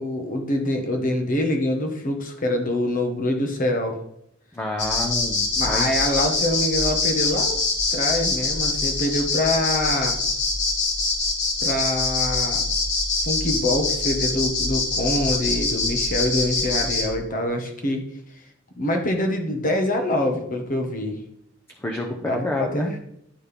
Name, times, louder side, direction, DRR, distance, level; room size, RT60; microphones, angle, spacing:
voice 1, 0.0-4.0 5.6-10.2 11.6-12.6 13.2-18.0 18.8-21.2 22.3-22.9, left 1 dB, 45° left, 4 dB, 1.1 m, -25 dB
voice 2, 4.5-5.9 21.8-22.2 22.4-22.9, left 1 dB, 10° left, 0 dB, 0.8 m, -28 dB
sound 1, 4.8-17.1, left 3 dB, 65° left, 1.9 m, -24 dB
11.5 x 4.2 x 3.5 m, 0.73 s
head